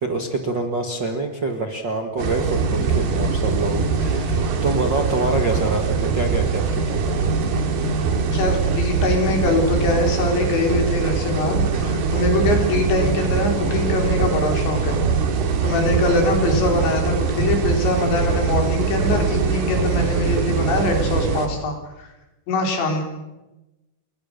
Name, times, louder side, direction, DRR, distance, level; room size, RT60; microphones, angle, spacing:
voice 1, 0.0-7.3, right 2 dB, 45° right, 3 dB, 1.5 m, -26 dB
sound 1, 2.2-21.5, right 5 dB, 70° right, 4.3 m, -22 dB
voice 2, 8.2-15.0 15.6-22.1 22.5-23.0, left 2 dB, 85° left, 3 dB, 6.4 m, -23 dB
29.5 x 22.0 x 6.8 m, 1.0 s
omnidirectional pair, 5.0 m